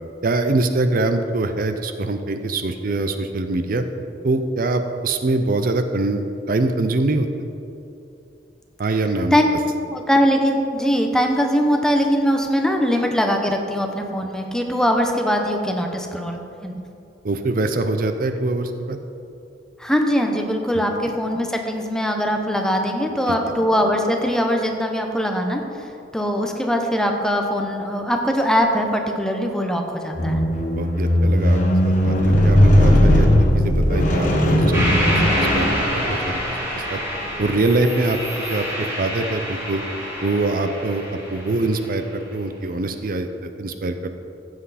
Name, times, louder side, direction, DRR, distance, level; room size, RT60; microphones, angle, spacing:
voice 1, 0.2-3.8 4.2-7.3 8.8-9.4 17.2-19.0 23.3-23.4 30.8-33.3 33.5-35.7 35.9-36.4 36.7-37.0 37.4-39.8 40.2-44.2, right 2 dB, 55° right, 8 dB, 0.6 m, -24 dB
voice 2, 9.9-16.7 19.8-25.6 26.1-30.4, equal, 5° left, 3 dB, 0.9 m, -21 dB
Squeak, 30.2-36.5 37.3-37.4, equal, 45° left, 1.3 m, -17 dB
sound 1, 34.7-42.0, equal, 15° right, 2.7 m, -27 dB
15.0 x 7.8 x 4.2 m, 2.7 s
head